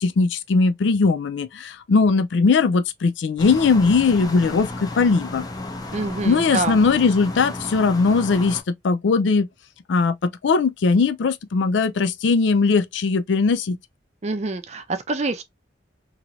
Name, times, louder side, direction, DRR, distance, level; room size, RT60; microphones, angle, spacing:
voice 1, 0.0-5.4 6.2-9.5 9.9-13.8, left 4 dB, 75° left, 0.4 m, -19 dB
sound 1, 3.4-8.6, left 2 dB, 20° left, 0.5 m, -33 dB
voice 2, 5.9-6.8 14.2-15.4, right 3 dB, 35° right, 0.5 m, -26 dB
3.0 x 3.0 x 2.4 m
head